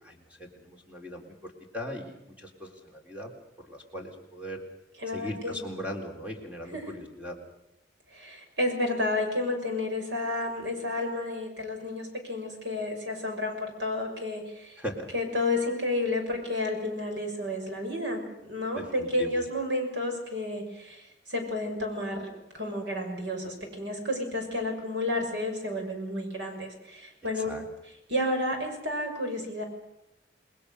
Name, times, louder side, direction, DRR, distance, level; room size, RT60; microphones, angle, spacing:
voice 1, 0.0-3.3 3.6-4.6 5.1-7.4 14.8-15.1 18.7-19.4 27.3-27.6, equal, 5° right, 1 dB, 3.8 m, -39 dB
voice 2, 5.0-5.6 6.7-6.9 8.1-14.8 15.1-27.5 28.1-29.6, left 1 dB, 75° right, 3 dB, 6.5 m, -31 dB
28.5 x 20.5 x 6.8 m, 0.87 s
head